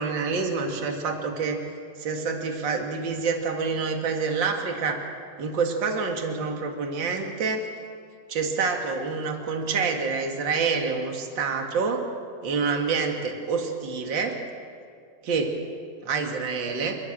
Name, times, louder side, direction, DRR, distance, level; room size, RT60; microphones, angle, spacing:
voice 1, 0.0-1.6 2.0-5.0 5.4-7.7 8.3-12.1 12.4-14.4 15.2-15.6 16.0-17.0, right 4 dB, 40° right, 3 dB, 2.0 m, -27 dB
29.0 x 13.5 x 7.5 m, 2.2 s
omnidirectional pair, 4.5 m